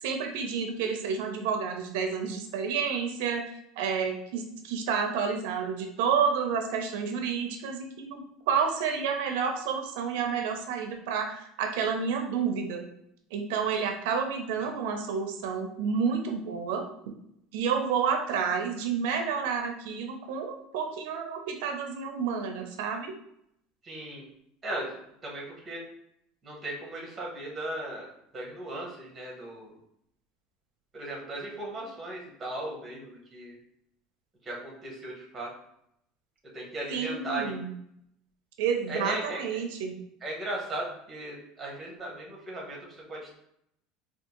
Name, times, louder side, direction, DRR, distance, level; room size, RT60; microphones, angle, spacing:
voice 1, 0.0-3.5 3.8-12.9 13.3-16.9 17.5-23.1 36.9-37.7 38.6-39.9, right 6 dB, 75° right, 3 dB, 0.4 m, -30 dB
voice 2, 23.8-24.2 24.6-25.8 26.4-29.7 30.9-33.6 34.4-35.5 36.5-37.5 38.9-39.4 40.2-43.4, right 2 dB, 15° right, -2 dB, 0.8 m, -37 dB
3.5 x 2.3 x 2.9 m, 0.75 s
cardioid pair, 175°, 0 cm